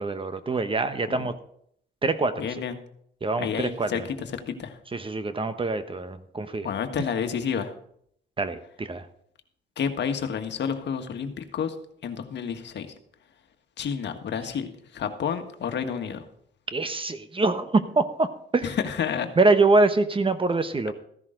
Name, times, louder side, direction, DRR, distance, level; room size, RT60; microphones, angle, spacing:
voice 1, 0.0-1.3 2.0-2.5 3.2-4.0 4.9-6.7 8.4-9.1 16.7-18.7 19.4-20.9, right 3 dB, 25° right, 11 dB, 1.0 m, -24 dB
voice 2, 2.4-2.8 3.4-4.8 6.6-7.7 9.8-11.8 12.0-12.9 13.8-16.2 18.6-19.3, left 7 dB, 60° left, 6 dB, 1.6 m, -30 dB
15.0 x 11.0 x 3.9 m, 0.67 s
cardioid pair, 90°, 20 cm